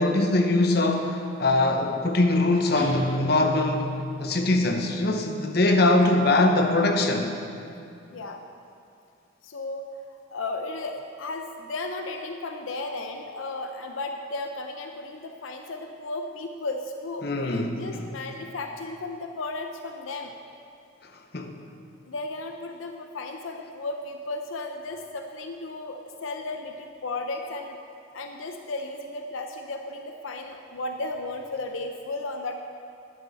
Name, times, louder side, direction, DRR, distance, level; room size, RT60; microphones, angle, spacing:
voice 1, 0.0-7.3 17.2-18.0 21.3-21.6, left 2 dB, 50° left, 4 dB, 0.9 m, -22 dB
Guitar, 2.7-4.4, equal, 60° right, 1.7 m, -31 dB
voice 2, 9.4-9.9 10.3-20.3 22.1-32.5, left 2 dB, 80° left, 4 dB, 0.6 m, -34 dB
12.0 x 10.0 x 4.1 m, 2.5 s
head